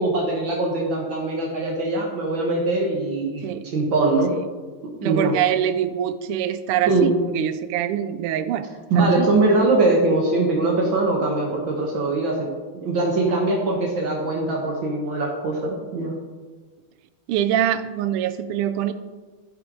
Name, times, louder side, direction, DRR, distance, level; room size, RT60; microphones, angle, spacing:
voice 1, 0.0-3.4 3.7-4.3 4.8-5.3 6.9-7.1 8.9-12.5 12.7-16.1, right 2 dB, 65° right, -1 dB, 1.9 m, -22 dB
voice 2, 5.0-8.7 8.9-9.3 17.3-18.9, right 10 dB, 85° right, 11 dB, 1.5 m, -24 dB
11.5 x 5.1 x 4.7 m, 1.3 s
omnidirectional pair, 2.4 m